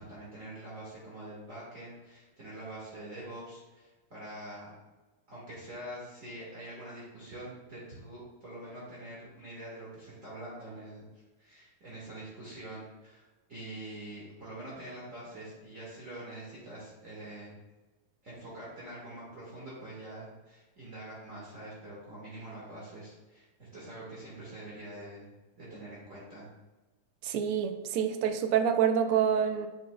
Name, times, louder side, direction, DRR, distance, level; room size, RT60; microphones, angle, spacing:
voice 1, 0.0-4.7 5.3-11.1 11.4-17.6 18.2-25.3 25.6-26.5, right 1 dB, 40° right, -7 dB, 1.8 m, -45 dB
voice 2, 27.2-29.7, right 8 dB, 90° right, 6 dB, 1.5 m, -27 dB
7.9 x 5.6 x 2.2 m, 1.1 s
omnidirectional pair, 2.3 m